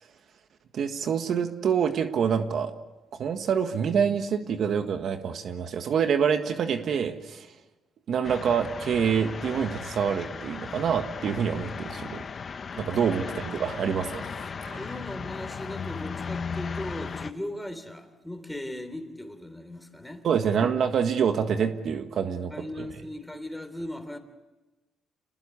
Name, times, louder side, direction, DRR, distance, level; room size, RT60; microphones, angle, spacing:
voice 1, 0.7-2.7 3.2-7.5 8.1-12.2 12.8-14.3 14.6-14.8 20.2-22.5 22.8-22.9, right 7 dB, 65° right, 1.6 m, -26 dB
sound 1, 8.2-17.3, left 5 dB, 45° left, 1.1 m, -36 dB
voice 2, 12.9-13.4 14.8-20.5 22.5-24.2, left 1 dB, 5° left, 3.3 m, -38 dB
28.0 x 19.5 x 8.5 m
cardioid pair, 90°, 0 cm